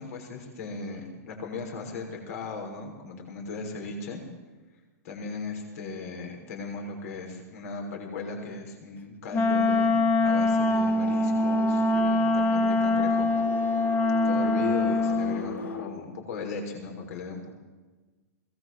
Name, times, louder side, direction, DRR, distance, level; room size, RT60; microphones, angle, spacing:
voice 1, 0.0-4.2 5.0-10.0 10.2-13.3 13.7-13.9 14.2-17.5, left 3 dB, 60° left, 2 dB, 6.2 m, -37 dB
Wind instrument woodwind instrument, 9.3-15.4, left 2 dB, 20° left, 1.7 m, -24 dB
sound 1, 10.5-15.9, left 4 dB, 90° left, 2.9 m, -38 dB
21.5 x 19.0 x 7.9 m, 1.3 s
hypercardioid pair, 130°, 9 cm